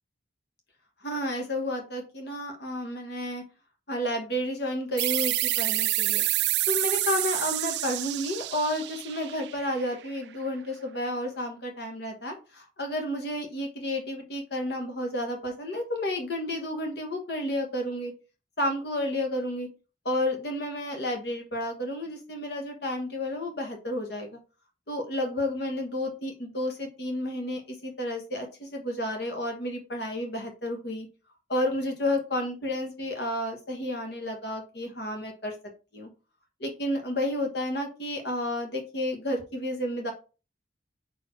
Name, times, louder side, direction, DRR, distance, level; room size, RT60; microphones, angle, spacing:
voice 1, 1.0-3.4 3.9-6.2 6.7-18.1 18.6-19.7 20.0-24.3 24.9-31.1 31.5-35.5 35.9-36.1 36.6-40.1, left 1 dB, 60° left, 3 dB, 1.3 m, -31 dB
sound 1, 5.0-10.2, right 17 dB, 60° right, 0.3 m, -28 dB
5.6 x 4.4 x 4.5 m, 0.32 s
head